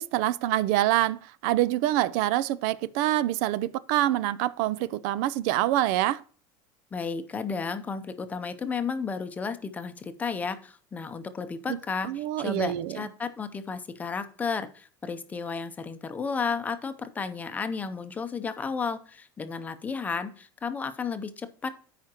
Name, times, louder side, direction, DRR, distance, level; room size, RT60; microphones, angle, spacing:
voice 1, 0.0-6.2 11.7-11.8 12.0-13.0, right 14 dB, 65° right, 0.4 m, -26 dB
voice 2, 6.9-21.7, left 5 dB, 15° left, 0.6 m, -33 dB
13.5 x 5.0 x 2.9 m
cardioid pair, 155°, 10 cm